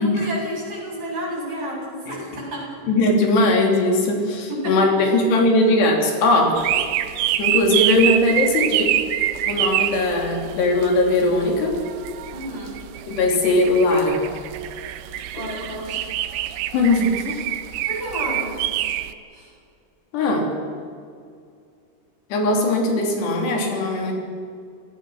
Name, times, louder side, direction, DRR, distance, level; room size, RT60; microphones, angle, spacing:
voice 1, 0.0-2.7 4.5-5.1 12.3-12.8 15.3-16.1 17.8-18.6 19.3-19.5, equal, 35° right, -4 dB, 8.8 m, -31 dB
voice 2, 2.8-6.6 7.4-9.0 9.4-11.8 13.1-14.2 16.7-17.4 20.1-20.5 22.3-24.1, left 2 dB, 90° left, 1 dB, 5.2 m, -19 dB
sound 1, 6.6-19.1, right 12 dB, 85° right, 2.9 m, -26 dB
27.0 x 18.0 x 6.4 m, 2.3 s
omnidirectional pair, 4.7 m